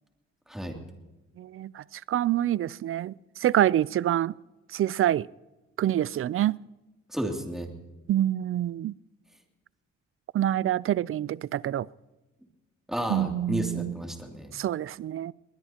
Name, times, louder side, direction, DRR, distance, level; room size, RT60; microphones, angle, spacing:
voice 1, 1.4-3.1 3.4-4.3 4.7-5.3 5.8-6.6 8.1-8.9 10.3-11.9 13.1-14.0 14.5-15.3, right 12 dB, 45° right, 0.4 m, -26 dB
voice 2, 7.1-7.7 12.9-14.5, equal, ahead, 2.7 m, -32 dB
21.5 x 19.5 x 2.9 m
cardioid pair, 90°, 30 cm